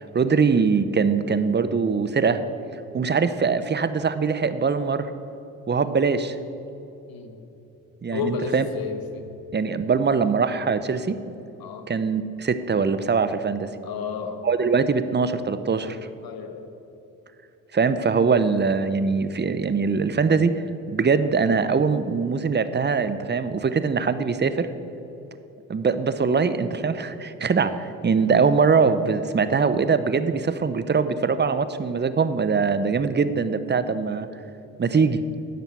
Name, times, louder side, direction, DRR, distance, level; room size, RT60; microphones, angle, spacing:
voice 1, 0.1-2.4 2.9-5.1 5.7-6.4 8.0-8.7 9.5-11.2 11.9-13.7 14.4-16.0 17.7-20.5 20.9-24.7 25.7-34.3 34.8-35.2, right 5 dB, 25° right, 12 dB, 0.9 m, -22 dB
voice 2, 8.1-9.3 11.6-11.9 13.8-14.7 16.2-16.7, left 6 dB, 65° left, 7 dB, 1.4 m, -32 dB
10.5 x 6.9 x 8.2 m, 3.0 s
hypercardioid pair, 55°, 39 cm